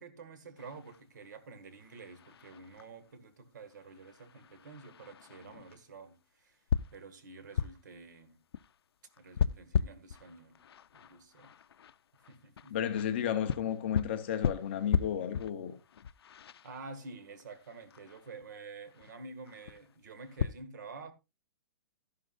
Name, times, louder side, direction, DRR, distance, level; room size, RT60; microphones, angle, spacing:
voice 1, 0.0-6.6 6.9-8.4 9.2-10.6 10.9-11.5 12.3-12.8 16.6-21.1, right 4 dB, 50° right, 1.7 m, -49 dB
sound 1, 0.6-20.5, left 7 dB, 80° left, 0.5 m, -38 dB
voice 2, 12.7-15.8, left 9 dB, 25° left, 0.8 m, -33 dB
12.5 x 11.5 x 2.5 m
hypercardioid pair, 180°, 13 cm